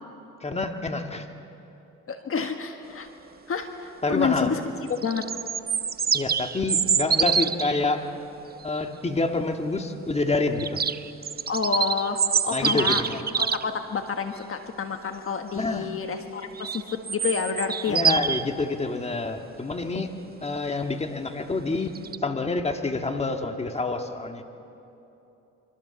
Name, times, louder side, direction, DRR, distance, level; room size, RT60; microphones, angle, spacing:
voice 1, 0.4-1.3 4.0-4.5 6.1-8.1 8.6-10.8 12.5-13.2 15.5-15.9 17.9-20.1 20.4-22.0 22.2-24.4, left 3 dB, 20° left, 5 dB, 1.9 m, -27 dB
voice 2, 2.1-3.1 3.5-4.6 4.9-5.2 11.5-13.0 13.4-18.0, left 6 dB, 45° left, 6 dB, 1.6 m, -29 dB
sound 1, 4.9-7.8 10.6-13.6 16.6-18.4 22.0-22.2, right 6 dB, 30° right, 0.7 m, -25 dB
27.0 x 24.5 x 7.1 m, 2.9 s
cardioid pair, 90°, 30 cm